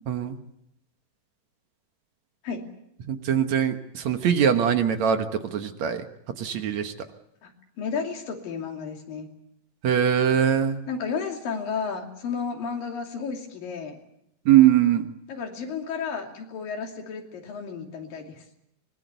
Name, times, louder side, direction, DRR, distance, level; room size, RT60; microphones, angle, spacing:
voice 1, 0.1-0.4 3.1-6.1 6.4-6.9 9.8-10.8 14.5-15.1, right 9 dB, 60° right, 7 dB, 2.4 m, -22 dB
voice 2, 7.8-9.3 10.9-14.0 15.3-18.4, left 5 dB, 85° left, 3 dB, 4.5 m, -32 dB
24.0 x 21.0 x 8.2 m, 0.78 s
omnidirectional pair, 3.9 m